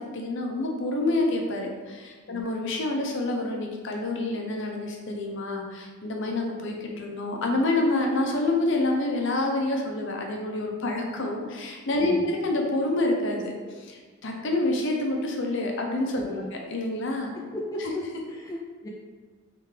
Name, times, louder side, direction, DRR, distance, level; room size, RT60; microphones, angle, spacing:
voice 1, 0.0-16.3 16.7-17.3 17.8-17.9, left 2 dB, 60° left, 1 dB, 0.6 m, -27 dB
voice 2, 17.3-18.9, left 1 dB, 15° left, -2 dB, 0.3 m, -36 dB
3.7 x 3.4 x 3.2 m, 1.5 s
head